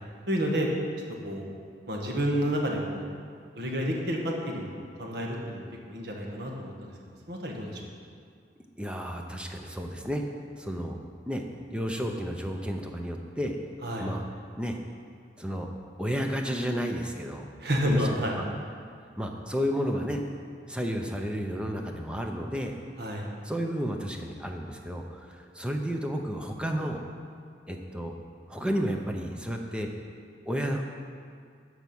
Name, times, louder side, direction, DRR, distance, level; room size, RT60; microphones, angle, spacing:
voice 1, 0.3-0.7 1.2-1.4 1.9-3.0 3.6-4.7 5.0-5.6 5.9-6.9 7.3-7.8 13.8-14.1 17.6-18.4 23.0-23.2, equal, 65° right, -1 dB, 1.5 m, -29 dB
voice 2, 8.8-10.2 10.6-11.0 11.3-11.4 11.7-13.6 14.0-14.3 14.6-14.8 15.4-15.7 16.0-17.5 17.9-18.1 18.4-18.5 19.2-20.2 20.7-22.7 23.4-27.0 27.7-28.1 28.5-29.9 30.5-30.8, equal, 5° right, 2 dB, 0.7 m, -32 dB
12.5 x 4.8 x 6.1 m, 2.2 s
head